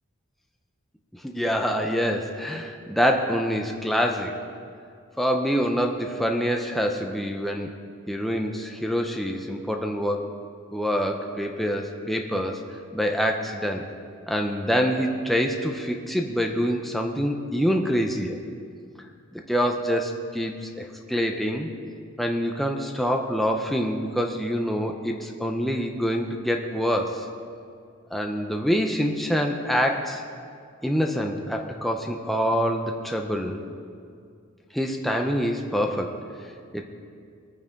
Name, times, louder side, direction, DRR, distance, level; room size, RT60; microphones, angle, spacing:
voice 1, 1.1-4.4 5.2-7.7 8.1-10.3 10.7-12.6 12.9-13.8 14.3-18.4 19.3-21.7 22.2-27.3 28.1-30.2 30.8-33.6 34.7-36.2 36.7-36.8, equal, ahead, 2 dB, 0.6 m, -26 dB
22.5 x 9.1 x 3.7 m, 2.3 s
head